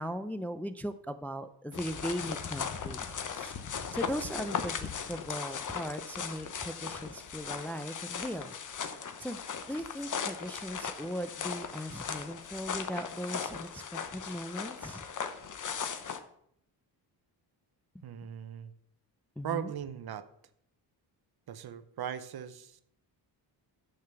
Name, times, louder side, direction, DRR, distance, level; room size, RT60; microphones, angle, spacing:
voice 1, 0.0-3.5 3.9-8.6 9.2-9.4 9.7-15.0 19.4-19.7, equal, 5° left, 9 dB, 0.4 m, -38 dB
sound 1, 1.7-16.2, left 6 dB, 45° left, 1.0 m, -38 dB
voice 2, 18.0-18.7 19.4-20.3 21.5-22.8, right 9 dB, 60° right, 12 dB, 0.9 m, -38 dB
6.9 x 6.4 x 6.9 m, 0.70 s
cardioid pair, 100°, 43 cm